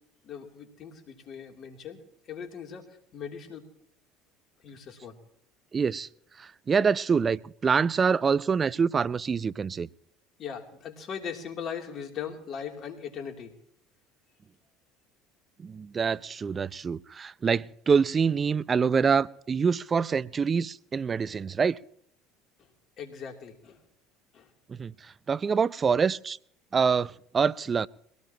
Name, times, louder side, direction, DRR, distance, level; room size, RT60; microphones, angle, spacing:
voice 1, 0.2-3.7 4.6-5.2 10.4-13.6 23.0-23.8 24.3-24.5, left 7 dB, 50° left, 3.1 m, -39 dB
voice 2, 5.7-6.1 6.4-9.9 15.6-21.8 24.7-26.4 26.7-27.9, right 6 dB, 35° right, 0.6 m, -26 dB
22.0 x 17.5 x 3.0 m
hypercardioid pair, 70°, 0 cm